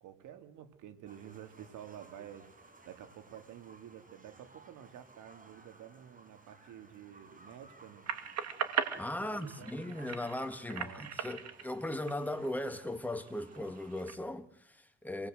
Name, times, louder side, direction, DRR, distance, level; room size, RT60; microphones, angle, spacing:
voice 1, 0.0-2.5 2.8-8.1 9.2-9.7 10.6-11.2, right 10 dB, 85° right, 2.7 m, -50 dB
sound 1, 1.1-14.1, right 2 dB, 25° right, 5.2 m, -59 dB
sound 2, 8.1-12.8 13.3-14.2, right 7 dB, 60° right, 2.6 m, -38 dB
voice 2, 9.0-15.3, left 1 dB, 5° left, 2.4 m, -38 dB
27.0 x 20.0 x 8.0 m
cardioid pair, 90°, 30 cm